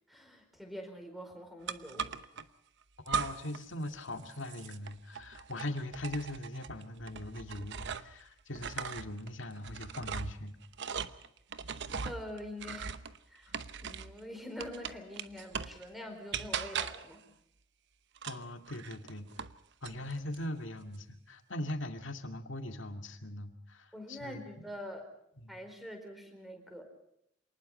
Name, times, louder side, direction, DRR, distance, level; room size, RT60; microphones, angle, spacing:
voice 1, 0.1-2.1 12.0-13.0 13.3-13.5 13.8-17.2 23.9-25.1 25.5-26.8, left 1 dB, ahead, 6 dB, 4.5 m, -45 dB
sound 1, 1.7-2.4 3.1-3.6 3.9-8.2 8.5-14.2 14.6-15.8 16.3-17.1 18.2-19.6 19.8-20.4, right 6 dB, 60° right, 1.0 m, -39 dB
voice 2, 3.1-10.6 18.3-19.3 19.8-24.7 25.4-25.6, left 1 dB, 65° left, 6 dB, 2.3 m, -41 dB
27.0 x 19.5 x 5.6 m, 0.76 s
head